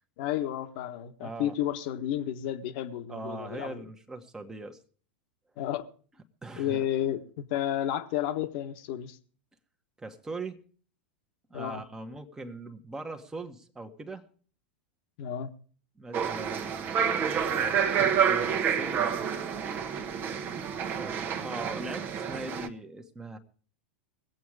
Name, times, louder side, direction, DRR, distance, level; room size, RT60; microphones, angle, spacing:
voice 1, 0.2-3.8 5.6-5.9 6.6-9.2 11.5-11.8 15.2-15.5, left 11 dB, 55° left, 1.4 m, -32 dB
voice 2, 1.2-1.5 3.1-4.8 6.4-6.9 10.0-10.6 11.5-14.3 16.0-19.1 20.9-23.4, right 3 dB, 10° right, 1.5 m, -40 dB
sound 1, 16.1-22.7, right 7 dB, 35° right, 1.3 m, -28 dB
22.0 x 8.5 x 4.8 m
figure-of-eight pair, 90°, 6 cm